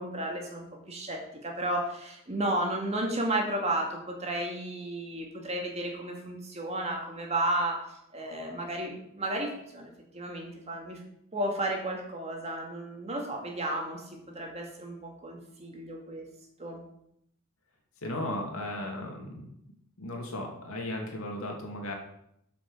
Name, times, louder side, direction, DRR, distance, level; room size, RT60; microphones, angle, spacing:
voice 1, 0.0-7.8 8.1-11.0 11.3-16.3 16.6-16.8, right 1 dB, 30° right, 1 dB, 2.1 m, -33 dB
voice 2, 18.0-19.5 20.0-21.9, left 1 dB, 80° left, 1 dB, 2.6 m, -35 dB
8.5 x 5.9 x 7.2 m, 0.75 s
head